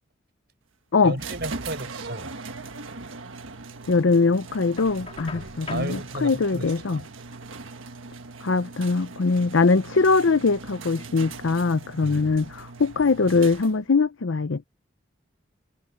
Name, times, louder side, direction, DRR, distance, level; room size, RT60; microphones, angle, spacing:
voice 1, 1.0-2.3 5.3-7.0 12.0-12.3, right 1 dB, 55° right, 6.4 m, -34 dB
sound 1, 1.2-14.0, right 3 dB, 85° right, 1.6 m, -40 dB
voice 2, 3.9-7.0 8.4-14.6, left 4 dB, 80° left, 0.6 m, -22 dB
Knock, 4.8-5.9, left 4 dB, 30° left, 2.8 m, -40 dB
head